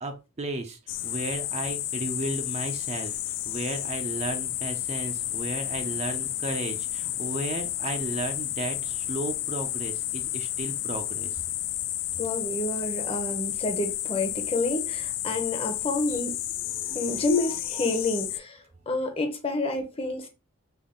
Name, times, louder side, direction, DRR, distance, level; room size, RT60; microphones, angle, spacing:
voice 1, 0.0-11.4 16.1-16.2 16.6-17.3 17.7-17.8, right 2 dB, 30° right, 0.5 m, -34 dB
sound 1, 0.9-18.4, left 13 dB, 60° left, 0.3 m, -31 dB
voice 2, 12.2-16.4 16.9-20.3, left 2 dB, 25° left, 0.8 m, -29 dB
3.5 x 2.4 x 3.7 m
head